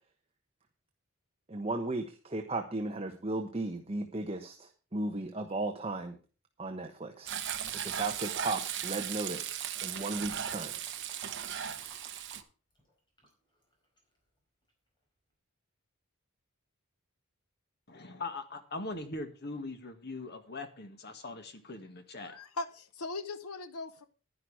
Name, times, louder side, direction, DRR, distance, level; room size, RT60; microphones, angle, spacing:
voice 1, 1.5-6.2 6.6-7.4 7.8-10.7, right 2 dB, 25° right, 5 dB, 1.1 m, -36 dB
Frying (food), 7.3-12.4, right 9 dB, 55° right, 1.1 m, -37 dB
sound 1, 9.2-12.4 12.7-14.2 14.7-14.8, equal, 20° left, 4.9 m, -57 dB
voice 2, 17.9-22.4, left 2 dB, 45° left, 7 dB, 1.8 m, -41 dB
voice 3, 22.3-24.1, left 3 dB, 80° left, 10 dB, 0.9 m, -39 dB
11.0 x 11.0 x 4.8 m, 0.35 s
head